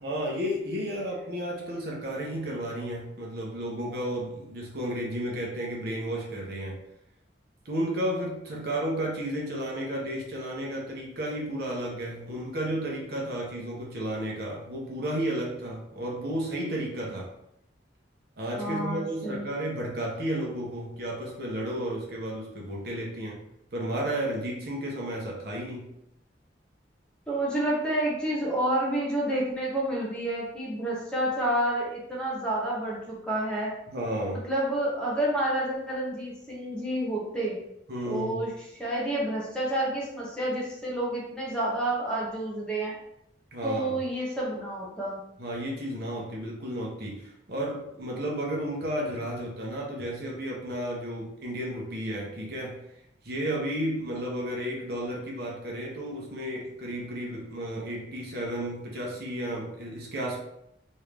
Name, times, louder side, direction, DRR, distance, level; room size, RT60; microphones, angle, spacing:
voice 1, 0.0-6.8 7.6-17.3 18.4-23.4 23.7-25.9 33.9-34.5 37.9-38.4 43.5-44.0 45.4-52.8 53.2-60.4, right 1 dB, 55° right, -3 dB, 0.8 m, -32 dB
voice 2, 18.6-19.4 27.3-33.7 34.4-37.6 38.1-38.5 38.8-42.9 43.6-45.2, right 1 dB, 5° left, -5 dB, 0.8 m, -29 dB
3.1 x 2.6 x 3.4 m, 0.78 s
head